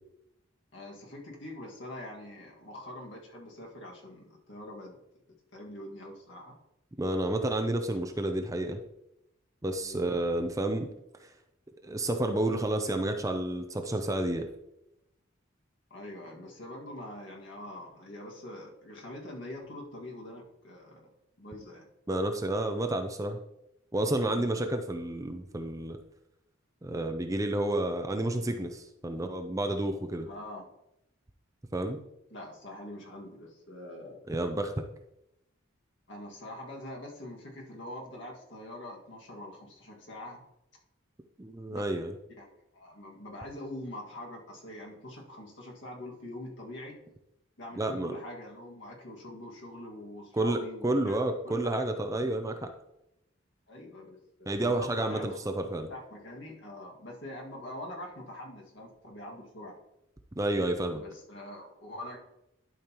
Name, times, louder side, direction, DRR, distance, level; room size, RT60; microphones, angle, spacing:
voice 1, 0.7-5.0 5.5-6.6 9.8-10.1 15.9-21.1 21.4-21.8 24.3-24.6 30.3-30.7 32.3-34.2 36.1-40.4 41.7-41.9 42.4-42.5 42.7-47.0 47.6-52.0 53.7-55.5 55.9-59.8 60.9-62.2, left 1 dB, 60° left, -1 dB, 1.9 m, -44 dB
voice 2, 7.0-8.8 9.6-10.9 11.2-11.3 11.8-14.5 22.1-23.4 23.9-26.0 26.8-30.3 31.7-32.0 34.3-34.8 41.4-42.1 47.8-48.2 50.3-52.7 54.5-55.9 60.4-61.0, right 1 dB, 15° right, 5 dB, 0.5 m, -30 dB
12.0 x 5.3 x 3.0 m, 0.84 s
head